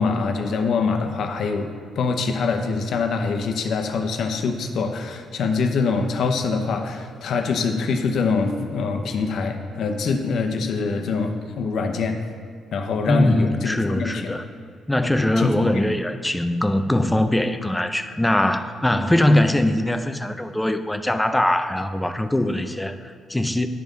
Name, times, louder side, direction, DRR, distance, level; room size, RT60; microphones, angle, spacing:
voice 1, 0.0-1.7 2.0-11.3 11.6-12.2 12.7-14.4 15.4-15.6, left 4 dB, 65° left, 5 dB, 0.8 m, -24 dB
voice 2, 13.1-14.5 14.9-23.7, left 1 dB, 10° left, 8 dB, 0.5 m, -21 dB
10.5 x 5.3 x 3.8 m, 2.2 s
cardioid pair, 90°, 0 cm